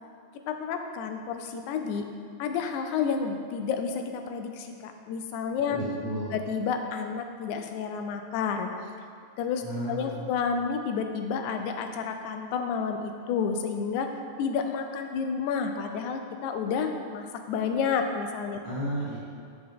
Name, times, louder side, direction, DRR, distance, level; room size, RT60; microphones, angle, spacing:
voice 1, 0.5-2.1 2.4-5.8 6.3-8.7 9.4-14.1 14.4-18.6, left 6 dB, 90° left, 5 dB, 2.0 m, -30 dB
voice 2, 5.7-6.3 9.6-10.3 18.6-19.2, right 1 dB, 45° right, -9 dB, 0.6 m, -33 dB
8.0 x 6.4 x 3.6 m, 2.3 s
omnidirectional pair, 3.3 m